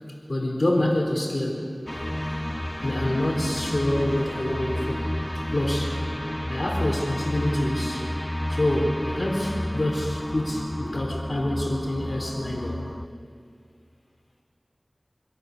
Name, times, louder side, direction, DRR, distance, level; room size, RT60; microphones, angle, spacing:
voice 1, 0.3-1.8 2.8-5.1 5.5-6.0 6.5-8.1 8.5-12.8, left 1 dB, 50° left, 0 dB, 3.9 m, -26 dB
sound 1, 1.9-13.1, left 1 dB, 15° left, 0.7 m, -31 dB
26.0 x 16.5 x 6.9 m, 2.3 s
wide cardioid pair, 50°, 0 cm